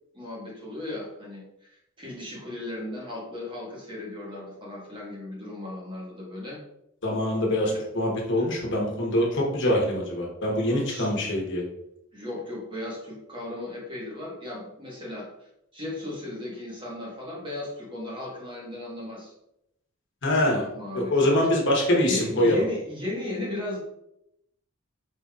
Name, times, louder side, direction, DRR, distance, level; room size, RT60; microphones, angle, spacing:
voice 1, 0.1-1.4 1.7-6.6 7.6-7.8 8.4-8.5 10.9-11.1 12.1-15.3 15.7-19.3 20.4-21.1 21.9-23.8, left 1 dB, 25° right, -4 dB, 1.3 m, -36 dB
voice 2, 7.0-11.6 20.2-20.7 20.9-22.6, left 1 dB, 60° left, -2 dB, 1.1 m, -24 dB
4.8 x 3.9 x 2.4 m, 0.82 s
head